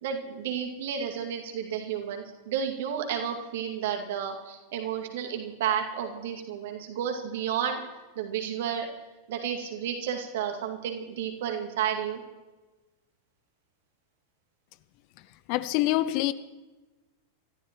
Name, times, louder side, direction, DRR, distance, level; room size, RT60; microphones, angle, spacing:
voice 1, 0.0-7.8 8.2-8.9 9.3-12.2, right 8 dB, 55° right, 2.2 m, -31 dB
voice 2, 15.5-16.3, left 16 dB, 45° left, 0.6 m, -25 dB
27.5 x 14.0 x 3.1 m
figure-of-eight pair, 90°, 0 cm